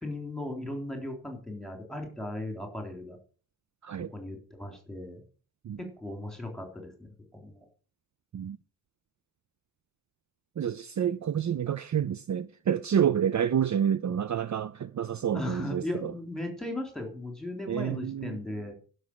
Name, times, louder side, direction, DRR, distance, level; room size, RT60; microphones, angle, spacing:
voice 1, 0.0-3.2 4.1-5.2 5.8-7.6 15.3-18.7, left 1 dB, ahead, 3.4 m, -37 dB
voice 2, 10.6-16.1 17.7-18.4, right 9 dB, 50° right, 0.5 m, -28 dB
11.5 x 6.1 x 8.8 m
wide cardioid pair, 175°, 36 cm